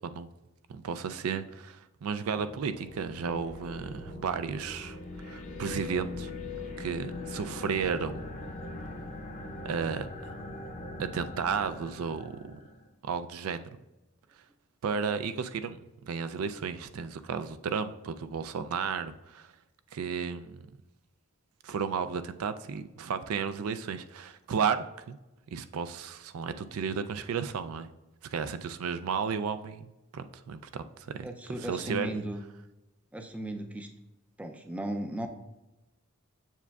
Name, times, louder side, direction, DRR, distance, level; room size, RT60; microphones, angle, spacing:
voice 1, 0.7-5.0 5.2-6.3 6.8-8.2 9.6-10.3 11.0-12.6 13.0-13.7 14.8-19.5 19.9-20.6 21.6-25.2 25.5-27.9 28.3-31.3 31.6-32.2, right 6 dB, 80° right, 11 dB, 0.4 m, -33 dB
sound 1, 2.3-12.9, left 2 dB, 35° left, 0.6 m, -41 dB
voice 2, 31.2-32.4 33.1-33.9 34.4-35.3, right 1 dB, 5° right, 5 dB, 0.4 m, -36 dB
7.3 x 6.8 x 2.3 m, 1.0 s
head